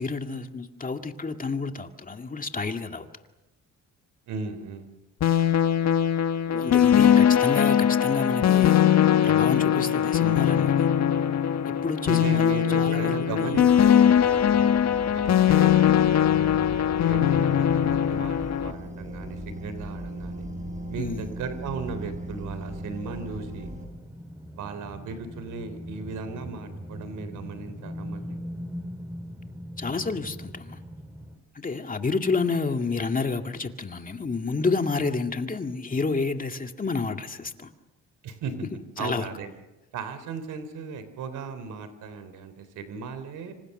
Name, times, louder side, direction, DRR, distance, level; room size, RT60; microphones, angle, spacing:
voice 1, 0.0-3.1 6.5-9.0 9.2-10.9 11.8-13.6 21.0-21.3 29.8-30.8 31.6-37.7 39.0-39.3, left 4 dB, 25° left, 2.2 m, -29 dB
voice 2, 4.3-4.9 12.1-14.9 15.1-16.1 17.0-20.5 20.9-23.7 24.5-28.4 38.2-38.5 39.0-39.5 39.9-43.5, right 5 dB, 80° right, 3.5 m, -36 dB
sound 1, 5.2-18.7, left 9 dB, 60° left, 1.6 m, -21 dB
sound 2, 13.6-23.9, right 1 dB, 25° right, 8.0 m, -38 dB
sound 3, 23.4-31.4, equal, 5° right, 5.0 m, -40 dB
26.5 x 26.0 x 6.6 m
cardioid pair, 90°, 30 cm